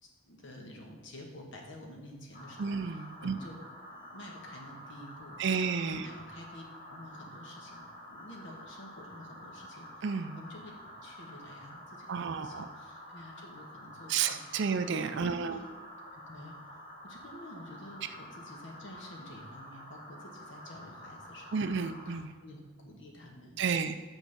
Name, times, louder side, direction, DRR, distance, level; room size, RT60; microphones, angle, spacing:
voice 1, 0.0-3.6 3.9-5.4 5.9-10.1 10.3-14.8 15.2-15.7 16.0-16.7 17.0-21.7 22.0-23.6, left 1 dB, 60° left, 1 dB, 1.4 m, -50 dB
sound 1, 2.3-22.2, equal, 40° left, 1.8 m, -49 dB
voice 2, 2.6-3.3 5.4-6.1 10.0-10.4 12.1-12.7 14.1-15.6 21.5-22.3 23.6-24.0, right 5 dB, 55° right, 10 dB, 0.4 m, -31 dB
5.7 x 5.5 x 5.7 m, 1.5 s
head